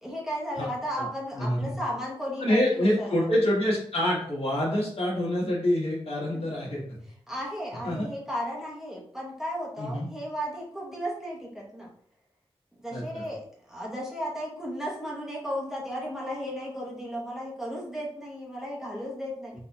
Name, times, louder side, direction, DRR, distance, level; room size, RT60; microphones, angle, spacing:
voice 1, 0.0-3.3 6.3-6.4 7.3-11.9 12.8-19.5, equal, 5° right, -4 dB, 0.9 m, -34 dB
voice 2, 1.3-1.7 2.4-7.0 7.8-8.1 9.8-10.1 12.9-13.2, left 1 dB, 70° left, -4 dB, 1.4 m, -26 dB
4.0 x 2.7 x 2.3 m, 0.62 s
wide cardioid pair, 100°, 10 cm